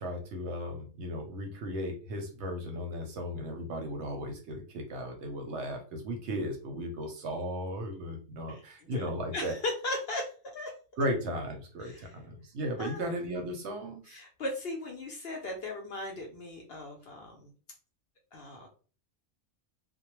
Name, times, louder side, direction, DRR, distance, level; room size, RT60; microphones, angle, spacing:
voice 1, 0.0-9.5 11.0-14.2, equal, 65° right, 3 dB, 0.8 m, -36 dB
voice 2, 9.3-10.3 10.5-10.7 11.8-12.1 12.8-13.1 14.1-17.5 18.3-18.7, left 2 dB, 60° left, 0 dB, 0.7 m, -37 dB
2.2 x 2.0 x 3.0 m, 0.38 s
omnidirectional pair, 1.4 m